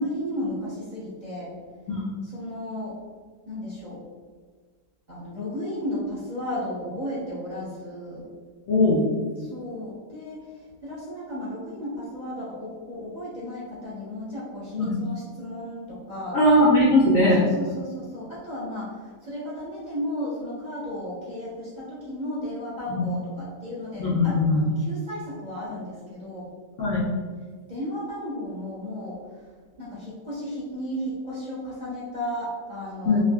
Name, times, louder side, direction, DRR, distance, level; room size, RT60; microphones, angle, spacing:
voice 1, 0.0-1.5 2.2-2.9 3.5-4.0 5.1-8.2 9.4-16.4 17.4-26.5 27.7-29.2 29.8-33.2, left 1 dB, 35° right, -10 dB, 0.7 m, -34 dB
voice 2, 8.7-9.0 14.8-15.0 16.3-17.4 22.9-23.1 24.0-24.6 26.8-27.0 33.1-33.2, left 1 dB, 65° left, -6 dB, 0.9 m, -19 dB
3.6 x 2.8 x 2.2 m, 1.5 s
omnidirectional pair, 1.8 m